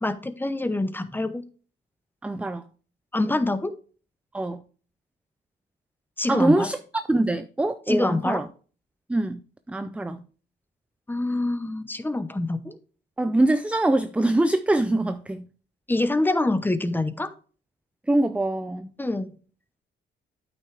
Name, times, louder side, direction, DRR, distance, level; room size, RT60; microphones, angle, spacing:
voice 1, 0.0-1.4 3.1-3.7 6.2-6.7 7.9-8.4 11.1-12.8 15.9-17.3 19.0-19.3, left 2 dB, 10° left, 0.8 m, -25 dB
voice 2, 2.2-2.6 4.3-4.6 6.3-8.5 9.1-9.4 9.7-10.2 13.2-15.4 18.1-18.9, right 2 dB, 5° right, 0.4 m, -23 dB
8.9 x 5.9 x 3.3 m
cardioid pair, 90°, 20 cm